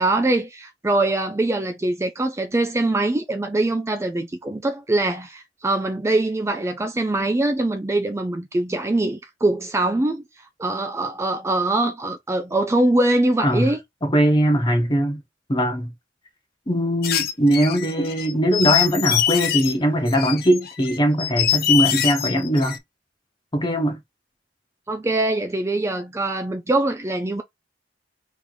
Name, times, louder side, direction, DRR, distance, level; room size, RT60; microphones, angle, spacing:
voice 1, 0.0-10.2 10.6-13.8 24.9-27.4, right 2 dB, 15° right, 0.4 m, -23 dB
voice 2, 14.0-15.2 15.5-15.9 16.7-22.8 23.5-24.0, equal, 25° left, 1.0 m, -20 dB
sound 1, 17.0-19.7 20.1-22.8, left 11 dB, 55° left, 0.7 m, -23 dB
3.5 x 3.1 x 3.9 m
head